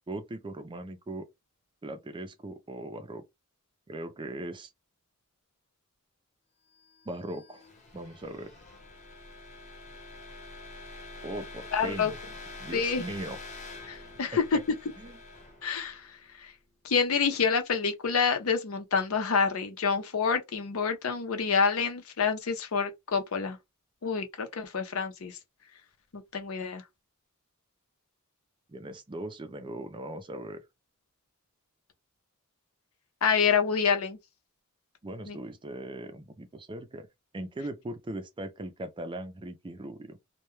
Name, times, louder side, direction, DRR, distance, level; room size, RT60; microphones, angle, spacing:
voice 1, 0.1-1.3 1.8-3.2 3.9-4.7 7.1-7.6 7.9-8.5 11.2-12.2 12.6-13.4 14.3-14.6 15.0-15.2 28.7-30.6 35.0-37.1 37.3-40.2, right 1 dB, 25° right, 0.4 m, -39 dB
sound 1, 6.9-16.7, left 2 dB, 35° left, 0.9 m, -46 dB
voice 2, 11.7-12.1 12.7-13.0 13.9-14.6 15.6-16.5 16.8-23.6 24.0-25.4 26.1-26.8 33.2-34.2 35.3-35.4, left 5 dB, 70° left, 0.6 m, -27 dB
2.2 x 2.2 x 3.0 m
head